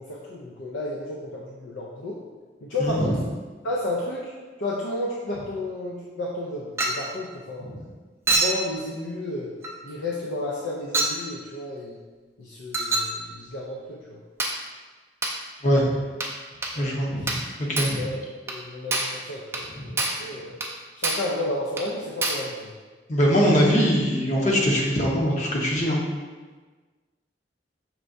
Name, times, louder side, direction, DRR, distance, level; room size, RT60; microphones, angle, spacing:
voice 1, 0.0-2.2 2.6-3.2 3.6-4.3 4.6-7.7 8.3-9.5 9.8-12.0 12.4-14.2 16.8-16.9 17.2-17.3 17.9-18.2 18.5-20.6 21.0-22.7, left 1 dB, 85° left, -5 dB, 0.6 m, -32 dB
Chink clink, 6.8-7.1 8.3-8.6 9.6-9.8 10.9-11.2 12.7-13.2 14.4-14.6 15.2-15.4 16.2-16.4 16.6-16.8 17.3-17.5 17.8-18.0 18.5-18.6 18.9-19.2 19.5-19.7 20.0-20.3 20.6-20.7 21.0-21.3 21.8-21.9 22.2-22.5, right 2 dB, 15° right, 0.4 m, -26 dB
voice 2, 16.8-17.3 17.7-18.0 19.8-19.9 23.1-26.0, equal, 40° left, -2 dB, 0.8 m, -22 dB
5.8 x 3.3 x 2.6 m, 1.4 s
head